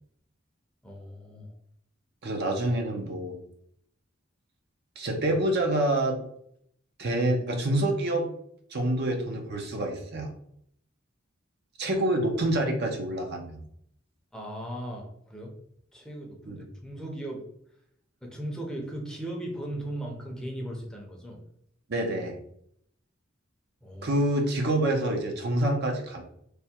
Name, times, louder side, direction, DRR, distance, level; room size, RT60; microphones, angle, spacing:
voice 1, 0.8-1.5 14.3-15.5 15.9-17.4 18.2-21.4 23.8-24.2, right 1 dB, 5° left, 0 dB, 0.6 m, -37 dB
voice 2, 2.2-3.3 5.0-6.2 7.0-8.3 8.7-10.3 11.8-13.6 16.5-16.6 21.9-22.4 24.0-26.2, right 1 dB, 55° right, 2 dB, 0.7 m, -27 dB
3.4 x 2.2 x 4.3 m, 0.70 s
head